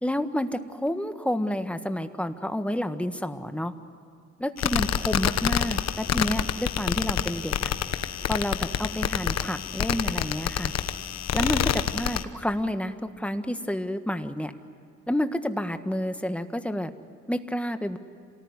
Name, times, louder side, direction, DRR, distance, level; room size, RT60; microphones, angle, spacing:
voice 1, 0.0-3.7 4.4-7.7 8.3-10.7 11.3-14.5 15.1-16.9 17.3-18.0, equal, 5° left, 8 dB, 1.5 m, -29 dB
sound 1, 4.6-12.2, left 9 dB, 60° left, 1.2 m, -27 dB
27.5 x 19.0 x 9.7 m, 2.5 s
cardioid pair, 90°, 30 cm